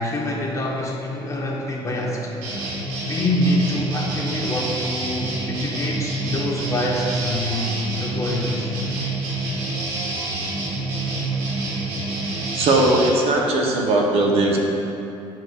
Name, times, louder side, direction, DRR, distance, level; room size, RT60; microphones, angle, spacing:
voice 1, 0.0-2.3 3.1-8.7, left 1 dB, 30° left, -3 dB, 1.1 m, -25 dB
sound 1, 2.4-13.1, right 2 dB, 90° right, 1.1 m, -27 dB
voice 2, 12.5-14.6, right 2 dB, 65° right, -1 dB, 1.0 m, -19 dB
10.5 x 4.6 x 2.5 m, 2.8 s
cardioid pair, 85°, 11 cm